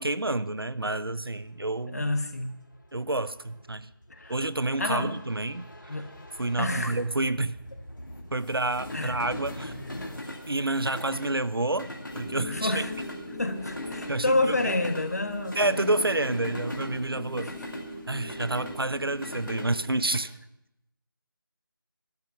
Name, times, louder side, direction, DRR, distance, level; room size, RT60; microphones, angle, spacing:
voice 1, 0.0-2.1 2.9-3.9 4.3-5.7 6.4-7.6 8.3-9.9 10.5-12.8 14.1-14.7 15.5-17.5 18.1-20.3, right 2 dB, 80° right, 15 dB, 0.8 m, -29 dB
sound 1, 0.7-20.2, left 1 dB, 60° left, 2.4 m, -41 dB
voice 2, 1.9-2.5 4.1-4.3 4.8-5.1 5.9-6.1 6.6-7.0 8.9-9.2 12.5-12.9 13.3-16.0 17.4-17.5, left 2 dB, 45° left, 8 dB, 1.3 m, -29 dB
sound 2, 12.1-19.9, left 1 dB, 20° left, 2.8 m, -42 dB
13.5 x 12.0 x 5.7 m, 0.82 s
figure-of-eight pair, 165°, 12 cm